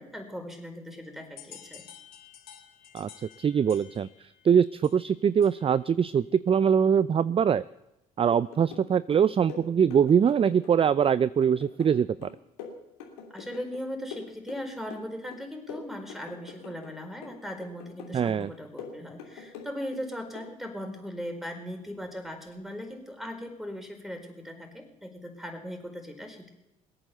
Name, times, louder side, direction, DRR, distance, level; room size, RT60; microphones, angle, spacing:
voice 1, 0.0-1.8 13.3-26.5, equal, ahead, 5 dB, 4.5 m, -39 dB
sound 1, 1.4-5.9, left 9 dB, 60° left, 3.6 m, -51 dB
voice 2, 3.4-7.6 8.2-12.3 18.1-18.5, right 7 dB, 30° right, 18 dB, 0.5 m, -23 dB
sound 2, 8.3-8.9 9.1-10.7 11.0-13.8 14.1-15.1 15.3-16.9 17.2-18.1 18.4-20.0 20.3-20.5, left 6 dB, 85° left, 3.1 m, -44 dB
20.5 x 9.0 x 6.9 m, 0.90 s
hypercardioid pair, 55°, 18 cm